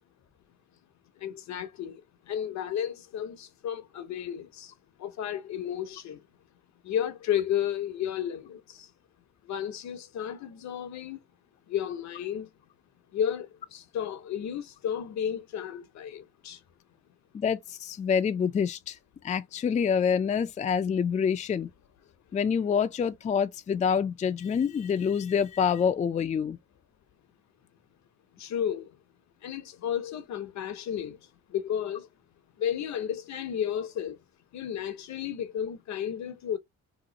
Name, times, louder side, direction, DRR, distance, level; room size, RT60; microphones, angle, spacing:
voice 1, 1.2-2.0 2.3-4.7 5.0-6.2 6.8-8.9 9.5-11.2 11.7-12.5 13.1-16.6 28.4-28.9 29.4-31.2 31.5-32.1 32.6-34.2 34.5-36.6, left 9 dB, 65° left, 0.7 m, -32 dB
voice 2, 17.3-19.0 19.2-21.7 22.3-26.6, left 7 dB, 25° left, 0.3 m, -26 dB
2.9 x 2.4 x 3.8 m
cardioid pair, 90°, 30 cm